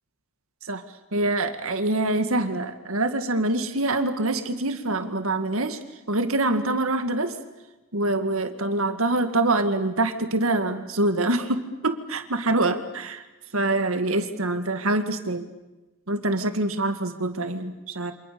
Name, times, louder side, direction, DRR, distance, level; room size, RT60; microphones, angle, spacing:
voice 1, 1.1-5.8 6.1-7.4 7.9-13.2 13.5-15.5 16.1-18.1, right 2 dB, 70° right, 8 dB, 2.0 m, -25 dB
29.0 x 26.5 x 6.9 m, 1.1 s
head